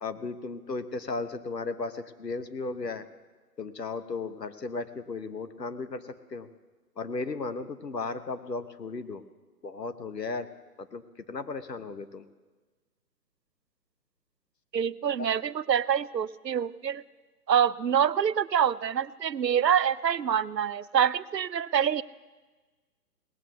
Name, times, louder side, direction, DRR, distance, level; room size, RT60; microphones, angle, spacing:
voice 1, 0.0-3.0 3.6-6.5 7.0-9.2 9.6-10.5 10.8-11.0 11.3-12.2 15.2-15.3, left 3 dB, 85° left, 10 dB, 1.1 m, -35 dB
voice 2, 14.7-17.0 17.5-22.0, right 8 dB, 85° right, 19 dB, 0.6 m, -26 dB
18.5 x 8.0 x 8.1 m, 1.3 s
figure-of-eight pair, 140°, 48 cm